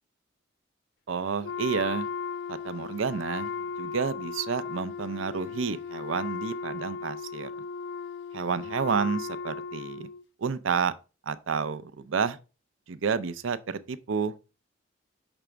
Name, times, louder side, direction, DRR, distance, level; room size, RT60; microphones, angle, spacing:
voice 1, 1.1-2.1 2.5-3.5 3.8-7.5 8.3-10.1 10.4-10.9 11.3-12.4 12.9-14.3, right 5 dB, 75° right, 0.5 m, -30 dB
Wind instrument woodwind instrument, 1.4-10.3, left 5 dB, 60° left, 0.3 m, -36 dB
5.9 x 3.4 x 5.0 m
head